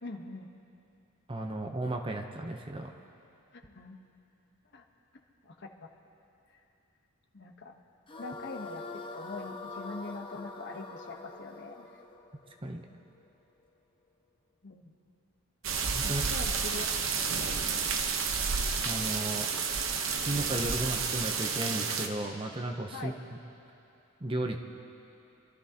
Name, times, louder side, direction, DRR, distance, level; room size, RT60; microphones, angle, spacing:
voice 1, 0.0-0.5 3.5-4.0 4.7-4.8 5.1-5.7 7.3-7.7 8.2-8.8 9.1-11.9 14.6-14.9 16.0-16.9 17.3-17.6 22.9-23.1, left 3 dB, 55° left, 3 dB, 1.1 m, -43 dB
voice 2, 1.3-2.9 12.6-12.8 15.9-16.2 18.8-19.5 20.3-23.1 24.2-24.6, right 1 dB, 25° right, 3 dB, 0.7 m, -34 dB
sound 1, 8.1-13.3, left 3 dB, 25° left, 0.7 m, -44 dB
sound 2, 15.6-22.1, right 5 dB, 65° right, 0.9 m, -31 dB
28.0 x 13.0 x 2.9 m, 2.8 s
head